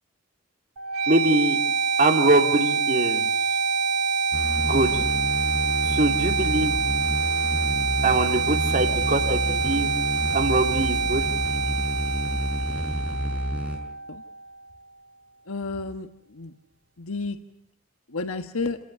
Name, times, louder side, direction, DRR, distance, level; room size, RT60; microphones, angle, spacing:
sound 1, 0.8-14.7, right 5 dB, 80° right, 2.7 m, -26 dB
voice 1, 1.1-1.6 2.0-3.3 4.6-5.0 5.9-6.8 8.0-9.9 10.3-11.2, right 2 dB, 40° right, 5 dB, 2.8 m, -23 dB
sound 2, 4.3-13.8, equal, 5° right, 6.4 m, -30 dB
voice 2, 15.5-16.5 17.0-17.4 18.1-18.8, left 3 dB, 75° left, 7 dB, 1.4 m, -31 dB
29.5 x 18.5 x 9.9 m, 0.71 s
head